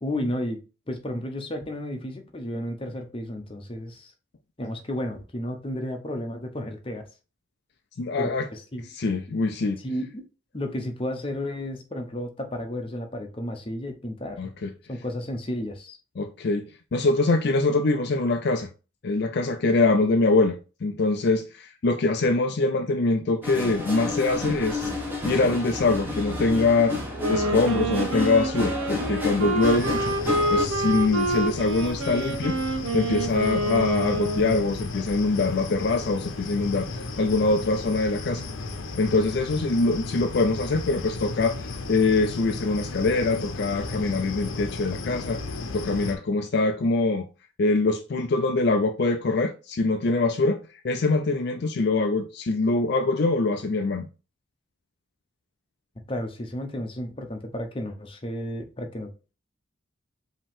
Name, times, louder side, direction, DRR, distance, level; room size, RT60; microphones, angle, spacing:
voice 1, 0.0-4.1 4.6-7.0 8.2-8.9 9.3-10.3 10.5-14.5 14.9-16.0 56.1-59.1, left 1 dB, 25° left, 0.8 m, -33 dB
voice 2, 8.0-8.5 8.9-9.8 14.4-14.7 16.2-16.6 16.9-18.7 19.0-24.9 25.2-27.0 27.3-30.2 30.5-32.6 32.9-38.4 39.0-45.4 45.7-47.3 47.6-50.6 50.8-54.1, left 3 dB, 55° left, 0.4 m, -24 dB
sound 1, 23.4-30.7, left 2 dB, 10° right, 1.2 m, -31 dB
Wind instrument woodwind instrument, 27.2-34.8, right 1 dB, 85° right, 0.9 m, -27 dB
sound 2, 29.6-46.2, left 3 dB, 80° left, 0.8 m, -35 dB
5.1 x 2.9 x 3.5 m
head